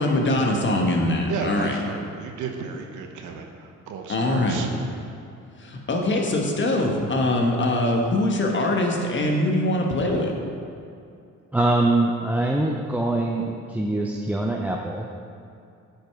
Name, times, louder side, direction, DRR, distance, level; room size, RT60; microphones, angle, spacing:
voice 1, 0.0-1.8 4.1-4.7 5.6-10.4, left 1 dB, 40° left, 1 dB, 1.3 m, -23 dB
voice 2, 1.3-3.4 3.9-4.7, right 6 dB, 75° right, 3 dB, 1.0 m, -33 dB
voice 3, 11.5-15.1, right 2 dB, 5° right, -1 dB, 0.5 m, -23 dB
9.0 x 5.4 x 4.7 m, 2.5 s
cardioid pair, 90°, 30 cm